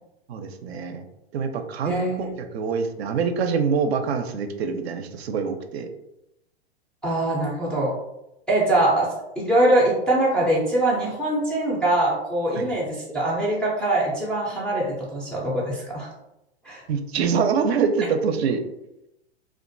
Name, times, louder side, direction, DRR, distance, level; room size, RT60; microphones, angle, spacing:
voice 1, 0.3-1.0 1.3-5.9 12.6-12.7 16.9-18.6, right 6 dB, 70° right, 7 dB, 0.5 m, -25 dB
voice 2, 1.8-2.3 7.0-7.9 8.5-9.1 9.4-16.1 16.6-16.8, right 1 dB, 5° left, -7 dB, 0.3 m, -23 dB
2.4 x 2.2 x 2.5 m, 0.88 s
hypercardioid pair, 120°, 33 cm